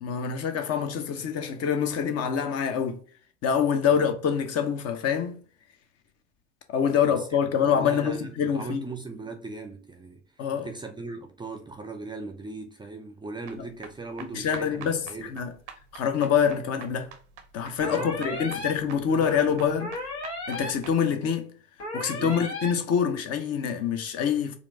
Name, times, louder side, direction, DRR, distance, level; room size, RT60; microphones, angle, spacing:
voice 1, 0.0-3.0 3.4-5.4 6.7-8.9 10.4-10.7 14.3-15.5 15.9-17.1 17.5-20.0 20.5-21.5 21.9-24.6, left 7 dB, 45° left, 0.8 m, -26 dB
voice 2, 7.0-15.3 17.8-18.7 19.1-19.9 22.2-22.4, right 3 dB, 15° right, 0.5 m, -39 dB
sound 1, 13.4-21.0, right 7 dB, 80° right, 0.7 m, -46 dB
sound 2, 17.8-18.7 19.8-20.7 21.8-22.7, left 1 dB, 80° left, 1.5 m, -34 dB
4.4 x 2.6 x 2.7 m
figure-of-eight pair, 65°, 35 cm